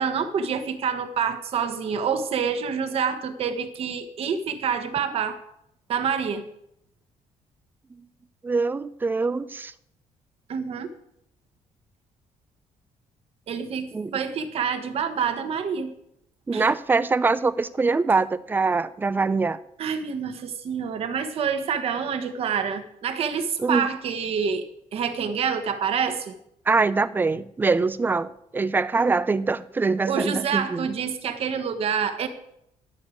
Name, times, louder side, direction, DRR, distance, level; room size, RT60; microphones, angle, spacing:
voice 1, 0.0-5.4 5.9-6.4 10.5-10.9 13.5-15.9 16.5-16.7 19.8-26.3 30.1-32.3, right 6 dB, 50° right, 1.3 m, -27 dB
voice 2, 8.4-9.7 13.9-14.1 16.5-19.6 23.6-23.9 26.7-30.9, right 4 dB, 15° right, 0.4 m, -23 dB
11.5 x 6.5 x 8.5 m
cardioid pair, 165°, 13 cm